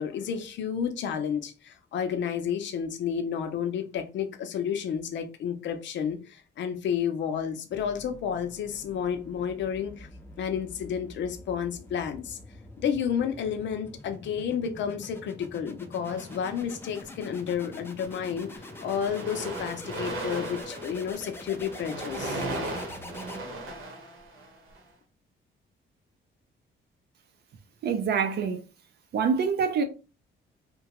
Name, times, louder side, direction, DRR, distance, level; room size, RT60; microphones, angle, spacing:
voice 1, 0.0-10.1 10.4-12.4 12.8-22.4, left 8 dB, 65° left, 0.5 m, -31 dB
sound 1, 7.7-23.8, left 2 dB, 10° left, 0.3 m, -45 dB
sound 2, 16.0-17.0 17.8-18.0 18.3-24.8, right 2 dB, 85° right, 0.9 m, -37 dB
voice 2, 27.8-28.6 29.1-29.8, right 6 dB, 55° right, 0.5 m, -25 dB
2.8 x 2.2 x 2.9 m
cardioid pair, 170°, 20 cm